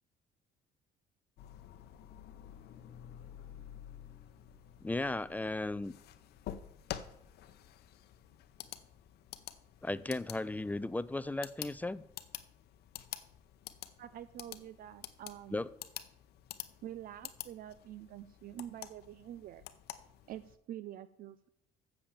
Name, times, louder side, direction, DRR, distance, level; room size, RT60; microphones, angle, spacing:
sound 1, 1.4-20.6, left 12 dB, 70° left, 0.7 m, -49 dB
voice 1, 4.8-5.9 9.8-12.0 15.5-15.7, left 2 dB, 10° left, 16 dB, 0.3 m, -35 dB
voice 2, 14.0-15.6 16.8-19.6 20.3-21.5, right 12 dB, 60° right, 14 dB, 0.4 m, -47 dB
7.3 x 6.9 x 7.1 m, 0.77 s
cardioid pair, 110°, 17 cm